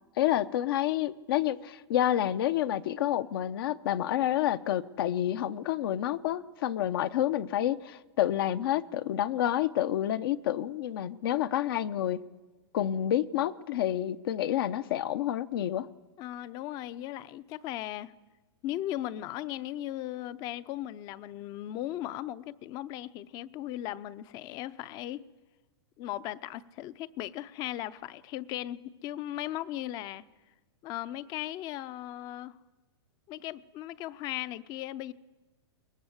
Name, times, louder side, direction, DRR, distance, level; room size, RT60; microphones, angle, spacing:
voice 1, 0.2-12.2 12.7-15.9, left 12 dB, 60° left, 0.7 m, -29 dB
voice 2, 16.2-18.1 18.6-25.2 26.0-30.2 30.8-32.6 33.3-35.1, left 13 dB, 30° left, 0.6 m, -37 dB
22.0 x 19.0 x 8.0 m
hypercardioid pair, 155°, 14 cm